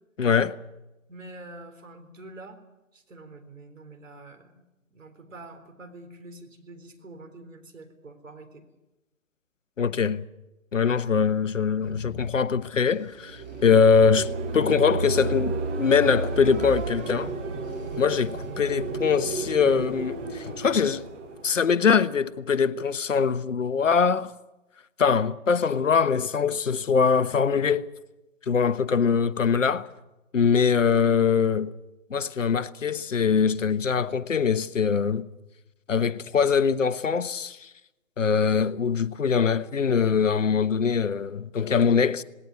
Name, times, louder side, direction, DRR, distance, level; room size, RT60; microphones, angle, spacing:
voice 1, 0.2-0.6 9.8-10.2 10.7-17.3 18.0-21.0 21.4-24.3 25.0-27.9 28.5-29.9 30.3-31.7 32.1-35.3 35.9-37.7 38.2-42.2, left 6 dB, 65° left, 1.1 m, -23 dB
voice 2, 1.1-2.6 2.9-4.7 4.9-8.6, right 2 dB, 65° right, 3.8 m, -46 dB
sound 1, 11.8-13.7 16.5-18.5, left 5 dB, 30° left, 1.5 m, -45 dB
sound 2, 13.2-22.2, right 3 dB, 5° right, 0.6 m, -32 dB
19.0 x 18.0 x 9.5 m
figure-of-eight pair, 140°, 41 cm